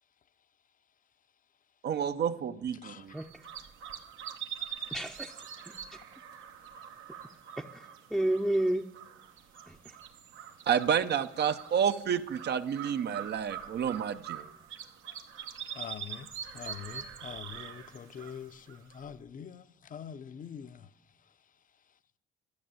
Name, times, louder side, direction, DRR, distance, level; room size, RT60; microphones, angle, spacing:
voice 1, 1.8-3.1 10.7-14.4, right 8 dB, 60° right, 0.6 m, -30 dB
sound 1, 3.1-19.2, right 8 dB, 85° right, 1.1 m, -44 dB
voice 2, 4.9-5.3 5.6-5.7 7.6-8.9 9.7-10.0, right 1 dB, ahead, 0.6 m, -31 dB
voice 3, 15.8-16.3 16.5-19.6 19.9-20.8, left 8 dB, 45° left, 0.6 m, -44 dB
12.5 x 6.5 x 9.0 m
cardioid pair, 90°, 20 cm